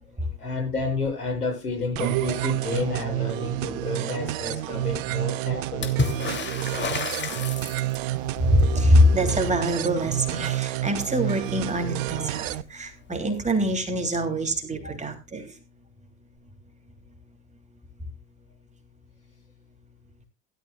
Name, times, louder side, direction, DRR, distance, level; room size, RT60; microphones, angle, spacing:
voice 1, 0.4-5.9 14.8-14.9, left 3 dB, 90° left, -1 dB, 8.0 m, -30 dB
sound 1, 2.0-12.6, right 16 dB, 55° right, 1.0 m, -29 dB
Water / Splash splatter, 5.8-8.2 11.5-11.6 11.8-12.6 13.7-13.8, left 5 dB, 25° left, 2.9 m, -30 dB
voice 2, 7.8-8.1 8.4-15.5, equal, 15° right, 5 dB, 3.2 m, -24 dB
17.0 x 12.5 x 2.4 m, 0.27 s
figure-of-eight pair, 80°, 45 cm